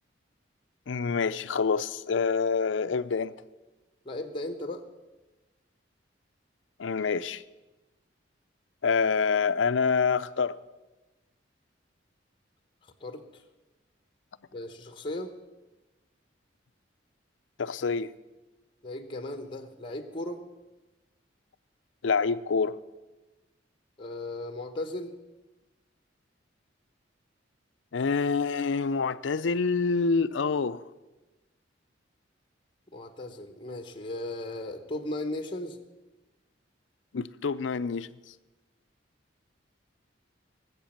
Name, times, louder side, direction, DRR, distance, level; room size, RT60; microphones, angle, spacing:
voice 1, 0.9-3.3 6.8-7.4 8.8-10.6 17.6-18.1 22.0-22.7 27.9-30.8 37.1-38.1, left 5 dB, 75° left, 0.5 m, -26 dB
voice 2, 4.0-4.8 12.8-13.4 14.5-15.3 18.8-20.4 24.0-25.1 32.9-35.8, left 1 dB, 25° left, 1.0 m, -36 dB
19.0 x 8.2 x 7.2 m
head